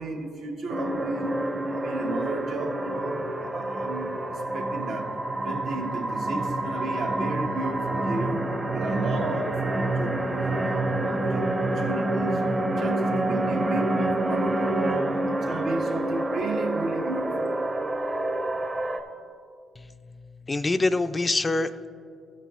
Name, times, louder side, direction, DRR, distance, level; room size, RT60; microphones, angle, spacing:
voice 1, 0.0-1.4 1.7-12.4 12.8-17.5, right 3 dB, 75° right, 1.2 m, -33 dB
sound 1, 0.7-19.0, right 1 dB, 25° right, 0.7 m, -27 dB
voice 2, 19.8-21.9, left 2 dB, 25° left, 0.3 m, -26 dB
14.5 x 5.6 x 3.6 m
cardioid pair, 90°, 0 cm